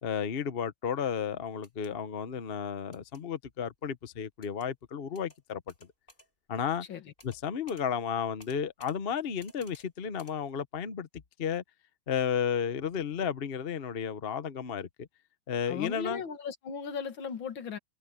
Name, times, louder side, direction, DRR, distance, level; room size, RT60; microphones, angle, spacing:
voice 1, 0.0-5.6 6.5-6.9 7.2-11.1 11.4-11.6 12.1-15.1 15.5-16.2, left 7 dB, 45° left, 0.7 m, -33 dB
sound 1, 1.5-1.9 2.9-3.2 4.4-4.7 5.1-5.4 5.7-6.3 7.2-7.4 7.7-7.8 8.4-9.0 9.4-9.9 10.2-10.3, left 1 dB, 20° left, 7.7 m, -56 dB
voice 2, 15.7-17.8, left 6 dB, 65° left, 2.3 m, -37 dB
omnidirectional pair, 2.4 m